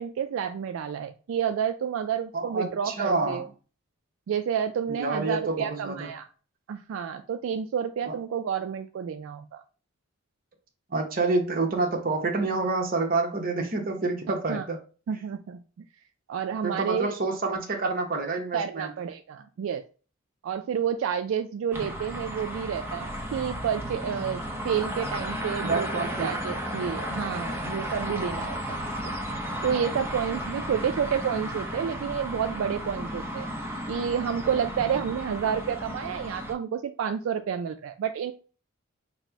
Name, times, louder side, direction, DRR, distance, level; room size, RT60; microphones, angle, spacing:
voice 1, 0.0-3.4 4.3-6.3 6.7-9.6 14.5-14.6 15.1-15.6 16.3-17.1 18.5-19.8 20.4-28.8 29.6-33.5 33.9-38.3, right 8 dB, 75° right, 0.3 m, -30 dB
voice 2, 2.3-3.5 4.9-6.1 8.1-8.2 10.9-14.8 16.6-18.9 25.6-26.3 27.5-27.6, right 3 dB, 45° right, 0.9 m, -28 dB
sound 1, 21.7-36.5, equal, 10° right, 0.6 m, -34 dB
4.1 x 2.1 x 4.5 m
head